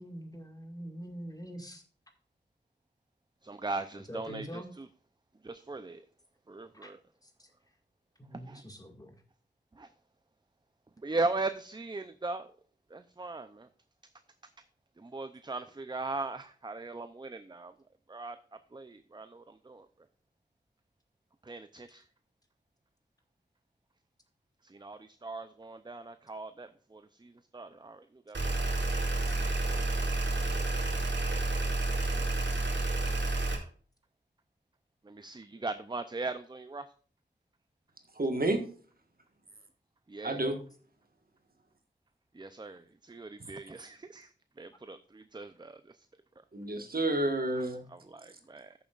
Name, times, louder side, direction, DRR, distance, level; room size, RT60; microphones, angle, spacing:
voice 1, 0.0-1.8 4.1-4.7 6.8-6.9 7.2-7.5 8.3-9.2 29.3-29.4 47.5-47.7, equal, 20° left, 4 dB, 2.0 m, -44 dB
voice 2, 3.4-4.9 5.4-6.0 6.5-7.0 8.3-8.6 9.7-9.9 11.0-12.5 12.9-13.7 15.0-17.7 18.1-18.4 18.7-19.9 21.4-22.0 24.6-28.4 31.6-31.8 35.0-36.8 40.1-40.6 42.3-44.3 44.6-46.1 47.9-48.7, right 3 dB, 25° right, 10 dB, 0.6 m, -39 dB
sound 1, 28.3-33.6, right 2 dB, 70° right, 2.5 m, -30 dB
voice 3, 38.1-38.6 40.2-40.5 46.5-47.8, right 2 dB, 50° right, 5 dB, 1.6 m, -30 dB
14.0 x 7.1 x 2.5 m, 0.43 s
wide cardioid pair, 70°, 19 cm